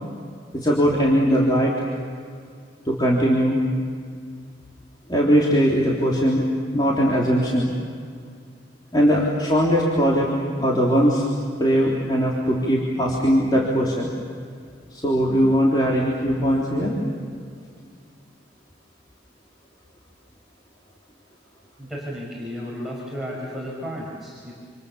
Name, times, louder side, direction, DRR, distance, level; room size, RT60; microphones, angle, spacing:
voice 1, 0.5-1.7 2.9-3.6 5.1-6.5 6.7-7.7 8.9-10.3 10.6-11.2 11.6-14.1 14.9-17.0, equal, 25° left, -5 dB, 3.6 m, -20 dB
voice 2, 21.8-24.5, equal, ahead, -5 dB, 5.5 m, -33 dB
29.0 x 28.0 x 7.0 m, 2.2 s
head